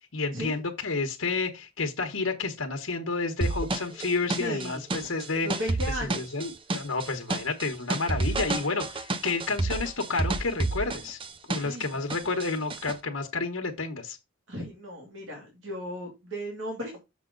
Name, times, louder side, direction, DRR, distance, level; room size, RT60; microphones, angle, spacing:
voice 1, 0.1-5.5 6.0-11.2 11.5-14.2, left 3 dB, 80° left, 1.2 m, -30 dB
sound 1, 3.4-11.8 12.1-12.9, right 2 dB, 25° right, 0.6 m, -30 dB
voice 2, 4.3-4.8 5.4-6.4 11.5-11.9 14.5-17.0, equal, 65° right, 2.8 m, -36 dB
7.3 x 5.5 x 3.9 m
head